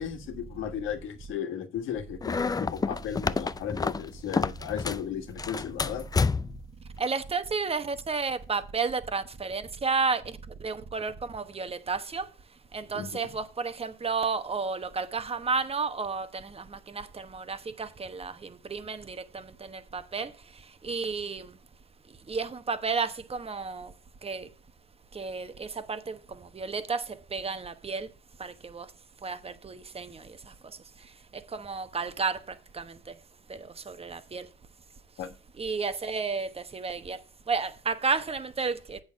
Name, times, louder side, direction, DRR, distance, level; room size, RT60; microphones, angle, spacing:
voice 1, 0.0-6.1 12.9-13.1 35.2-35.3, left 9 dB, 85° left, 1.5 m, -35 dB
sound 1, 2.2-5.1 5.4-6.7, left 4 dB, 20° left, 0.4 m, -29 dB
voice 2, 7.0-10.2 10.6-12.2 12.7-20.3 20.8-21.5 22.3-23.9 24.2-24.5 25.1-26.2 26.5-27.0 27.3-28.1 28.4-28.9 29.2-30.2 31.5-32.4 32.7-33.0 33.5-33.6 33.9-34.5 35.6-37.2 37.5-39.0, right 4 dB, 30° right, 1.0 m, -32 dB
8.0 x 6.5 x 5.1 m
cardioid pair, 90°, 20 cm